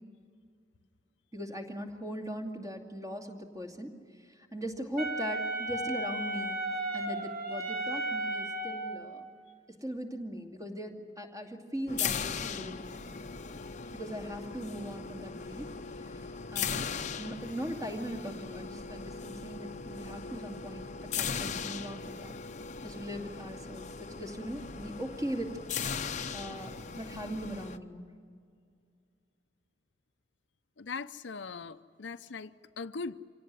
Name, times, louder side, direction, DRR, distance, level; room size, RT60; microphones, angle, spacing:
voice 1, 1.3-3.9 4.2-6.6 6.9-9.3 9.8-13.0 13.9-16.8 17.2-22.3 22.8-25.5 25.8-28.1, equal, 20° right, 2.5 m, -40 dB
Wind instrument woodwind instrument, 5.0-9.1, right 1 dB, 55° right, 1.8 m, -34 dB
sound 1, 11.9-27.8, left 6 dB, 40° left, 0.8 m, -38 dB
voice 2, 30.8-32.5 32.8-33.2, left 4 dB, 85° left, 0.7 m, -40 dB
26.5 x 18.0 x 9.6 m
head